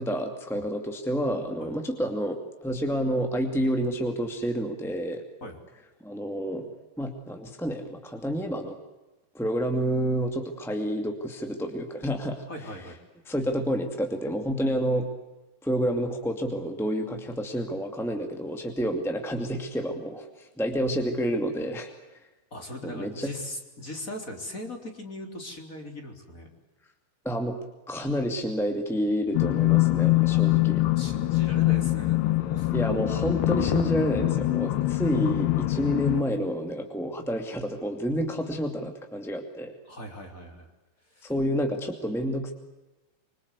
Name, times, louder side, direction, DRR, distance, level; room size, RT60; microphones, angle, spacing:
voice 1, 0.0-5.2 6.0-6.7 7.0-8.8 9.3-12.4 13.2-15.1 15.6-22.2 22.8-23.3 27.2-27.6 27.9-30.8 32.7-39.7 41.2-42.5, equal, ahead, 4 dB, 1.3 m, -29 dB
voice 2, 12.5-13.0 22.5-26.5 30.1-32.7 39.8-40.7 41.1-41.3, left 1 dB, 20° left, 4 dB, 3.7 m, -39 dB
sound 1, 29.3-36.2, left 18 dB, 85° left, 3.2 m, -24 dB
26.5 x 25.5 x 8.4 m, 1.1 s
omnidirectional pair, 4.6 m